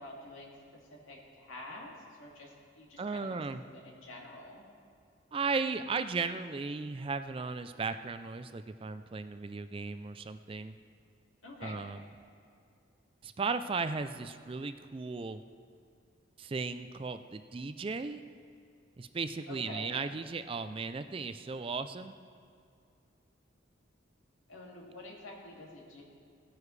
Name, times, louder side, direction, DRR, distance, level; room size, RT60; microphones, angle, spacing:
voice 1, 0.0-3.4 3.7-4.6 11.4-11.8 19.5-20.0 24.5-26.0, left 1 dB, 90° left, -2 dB, 2.4 m, -48 dB
voice 2, 3.0-3.6 5.3-10.7 11.6-12.0 13.2-15.4 16.4-18.2 19.0-22.1, right 4 dB, 25° right, 10 dB, 0.3 m, -36 dB
18.0 x 9.6 x 3.2 m, 2.4 s
head